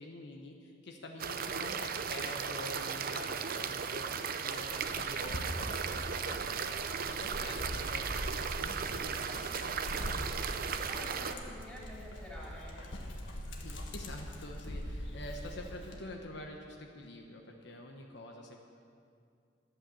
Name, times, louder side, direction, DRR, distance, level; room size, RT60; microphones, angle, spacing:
voice 1, 0.0-10.4 10.7-10.9 13.6-18.6, left 2 dB, 65° left, 1 dB, 1.1 m, -47 dB
sound 1, 1.2-11.3, right 6 dB, 50° right, 0.6 m, -36 dB
Dog, 4.6-16.0, equal, 85° left, 1.6 m, -42 dB
voice 2, 10.6-13.1, left 1 dB, 5° left, -6 dB, 3.4 m, -49 dB
12.5 x 8.9 x 7.1 m, 2.4 s
head